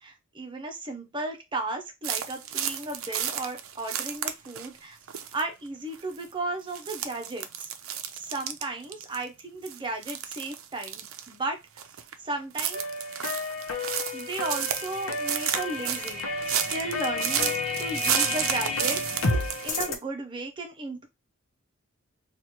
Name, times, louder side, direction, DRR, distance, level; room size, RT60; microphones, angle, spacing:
voice 1, 0.0-5.0 5.3-7.7 8.1-11.6 12.2-12.8 14.1-17.5 17.8-19.0 19.6-21.1, right 2 dB, 25° right, 4 dB, 0.7 m, -35 dB
sound 1, 2.0-4.8 5.1-5.4 5.9-6.3 6.7-9.4 9.7-11.3 11.8-12.1 12.4-19.9, right 9 dB, 75° right, 0.5 m, -32 dB
sound 2, 12.7-20.0, left 2 dB, 75° left, 0.8 m, -31 dB
3.0 x 2.4 x 4.2 m, 0.22 s
head